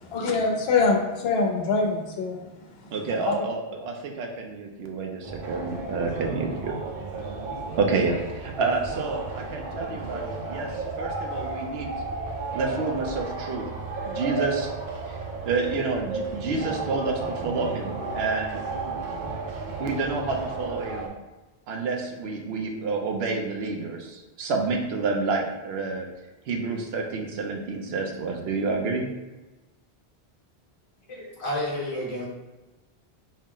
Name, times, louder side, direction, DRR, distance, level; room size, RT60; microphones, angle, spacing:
voice 1, 0.0-2.4 2.8-2.9 3.2-3.5, left 4 dB, 75° left, 1 dB, 0.8 m, -24 dB
voice 2, 2.9-6.7 7.8-11.9 12.5-13.6 14.0-14.7 15.1-15.2 15.4-18.6 19.8-21.1 21.7-26.1 26.5-29.1, right 4 dB, 80° right, 2 dB, 0.8 m, -29 dB
sound 1, 5.2-21.1, right 3 dB, 55° right, 0.7 m, -33 dB
voice 3, 31.1-32.2, left 1 dB, 35° left, -5 dB, 0.8 m, -30 dB
4.1 x 2.0 x 3.7 m, 1.1 s
omnidirectional pair, 1.1 m